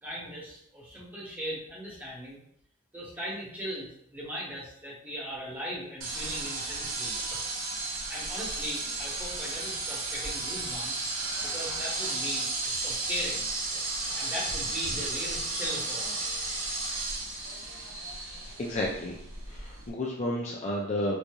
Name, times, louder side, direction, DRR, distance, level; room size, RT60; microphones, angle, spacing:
voice 1, 0.0-2.4 2.9-7.2 8.1-11.1 11.4-13.5 14.1-16.1, equal, 10° right, -5 dB, 1.0 m, -38 dB
sound 1, 6.0-19.9, right 3 dB, 65° right, 0.8 m, -33 dB
voice 2, 18.6-19.1 19.5-21.2, left 1 dB, 30° left, -2 dB, 0.4 m, -31 dB
4.5 x 2.6 x 2.3 m, 0.67 s
head